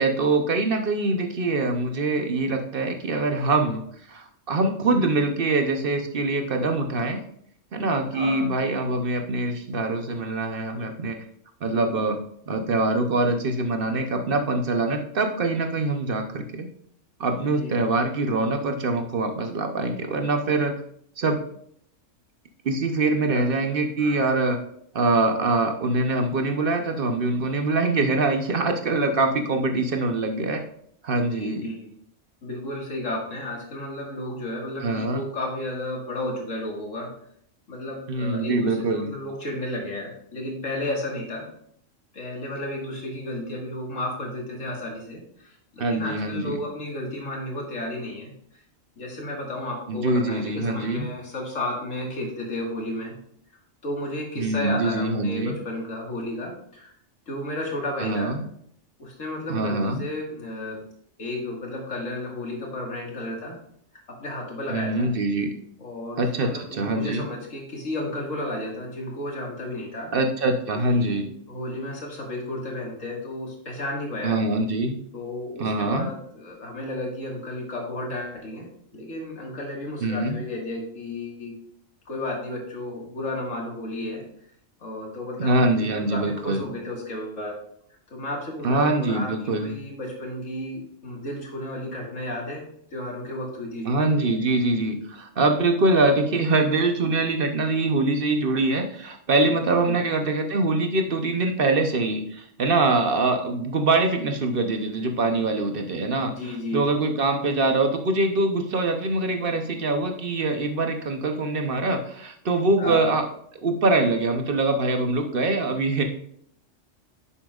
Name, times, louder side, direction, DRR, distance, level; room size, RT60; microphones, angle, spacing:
voice 1, 0.0-3.8 4.1-7.2 7.7-11.2 11.6-16.7 17.2-20.7 21.2-21.4 22.6-24.6 24.9-30.6 31.0-31.7 34.8-35.2 38.1-39.1 45.8-46.6 49.9-51.1 54.4-55.6 58.0-58.4 59.5-60.0 64.7-65.5 66.2-67.3 70.1-71.2 74.2-75.0 75.6-76.1 80.0-80.4 85.4-86.6 88.6-89.7 93.9-106.3 106.7-113.2 113.6-116.0, right 2 dB, 50° right, 4 dB, 0.9 m, -24 dB
voice 2, 8.1-8.5 17.4-17.8 23.3-23.7 24.0-24.3 31.3-32.0 32.4-37.1 37.7-41.5 42.1-48.6 49.0-53.2 53.8-56.9 57.3-58.4 59.0-60.8 61.2-63.6 64.1-65.1 65.8-70.1 70.9-74.4 75.1-81.6 82.1-84.2 84.8-87.6 88.1-94.0 99.9-100.0 106.3-106.9 112.8-113.0, left 1 dB, 90° left, -1 dB, 2.2 m, -33 dB
10.0 x 7.1 x 2.4 m, 0.67 s
omnidirectional pair, 1.3 m